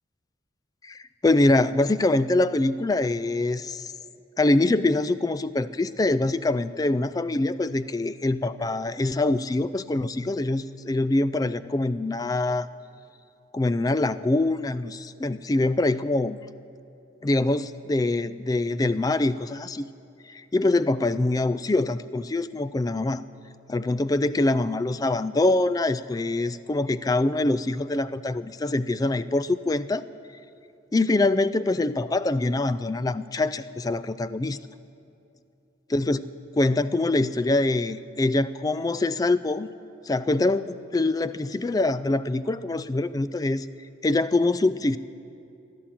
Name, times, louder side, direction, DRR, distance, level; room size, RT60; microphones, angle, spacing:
voice 1, 0.8-3.9 4.4-12.7 13.5-16.4 17.2-19.9 20.3-23.2 23.7-30.0 30.9-34.6 35.9-36.3 36.5-39.7 40.1-43.7 44.0-45.0, left 2 dB, 20° left, 14 dB, 0.3 m, -24 dB
15.5 x 11.5 x 7.5 m, 2.6 s
head